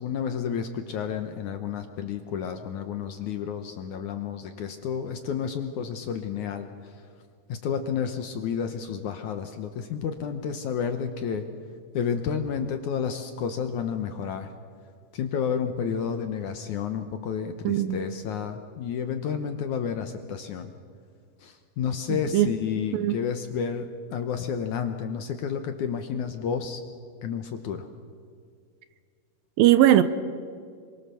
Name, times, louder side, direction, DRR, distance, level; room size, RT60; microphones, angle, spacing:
voice 1, 0.0-6.9 7.5-11.5 11.9-14.5 15.1-20.7 21.4-26.8 27.2-27.9, left 7 dB, 70° left, 1.9 m, -31 dB
voice 2, 17.7-18.0 22.3-22.5 22.9-23.2 29.6-30.0, right 13 dB, 75° right, 2.3 m, -19 dB
27.5 x 24.5 x 7.0 m
omnidirectional pair, 4.6 m